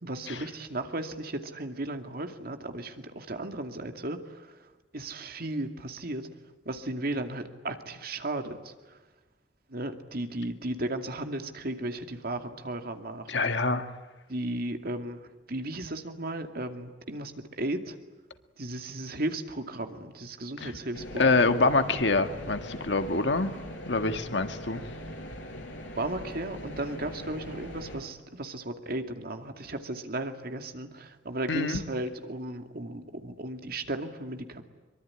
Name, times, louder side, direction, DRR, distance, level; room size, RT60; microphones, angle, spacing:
voice 1, 0.0-6.3 6.6-9.0 9.7-13.4 14.3-15.2 15.5-18.0 18.6-21.5 25.9-34.6, right 1 dB, 55° right, 6 dB, 2.4 m, -35 dB
voice 2, 13.3-13.9 20.6-20.7 21.2-23.5 23.9-24.8 31.5-31.8, left 3 dB, 70° left, 8 dB, 1.8 m, -25 dB
sound 1, 20.9-28.0, left 1 dB, 85° left, 5.8 m, -41 dB
24.0 x 23.5 x 10.0 m, 1.2 s
head